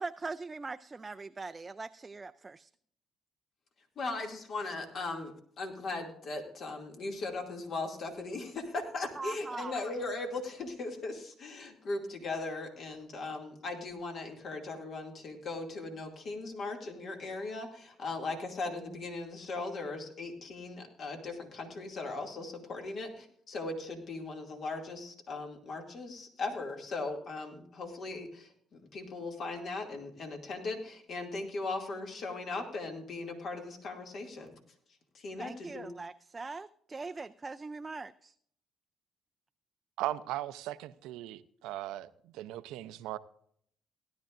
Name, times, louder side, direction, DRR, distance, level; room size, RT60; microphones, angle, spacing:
voice 1, 0.0-2.7 9.2-9.7 35.4-38.3, right 3 dB, 25° right, 0.4 m, -41 dB
voice 2, 4.0-34.5 35.1-35.9, left 3 dB, 60° left, 2.4 m, -38 dB
voice 3, 40.0-43.2, right 14 dB, 85° right, 0.5 m, -38 dB
17.0 x 11.5 x 2.5 m
supercardioid pair, 80°, 0 cm